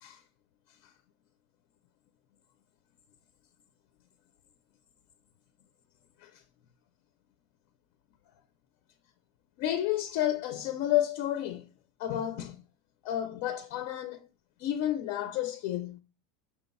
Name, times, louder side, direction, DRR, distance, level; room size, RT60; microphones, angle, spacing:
voice 1, 9.6-11.7 12.0-12.6 13.0-14.3 14.6-16.0, left 12 dB, 50° left, 0.4 m, -31 dB
5.7 x 2.2 x 4.0 m
supercardioid pair, 170°, 0 cm